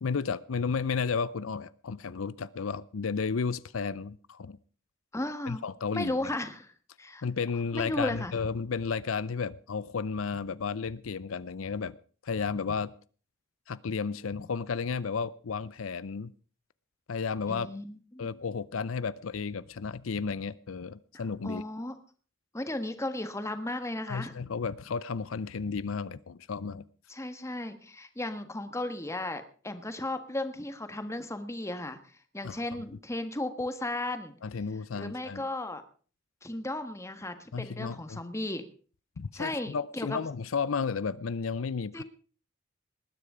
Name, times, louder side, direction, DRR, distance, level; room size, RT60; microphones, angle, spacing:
voice 1, 0.0-4.6 5.5-6.1 7.2-12.0 12.2-12.9 13.7-16.3 17.1-17.7 18.2-21.6 24.1-26.8 32.4-32.6 34.4-35.5 37.5-38.2 39.2-42.0, left 5 dB, 90° left, 18 dB, 0.6 m, -33 dB
voice 2, 5.1-5.6 5.9-6.7 7.0-7.2 7.7-8.3 17.5-18.3 21.4-21.9 22.5-24.4 27.1-32.0 32.3-34.3 34.9-35.8 36.4-38.6 39.3-40.2 41.9-42.0, left 1 dB, 15° left, 9 dB, 1.5 m, -35 dB
20.0 x 10.0 x 5.0 m, 0.41 s
head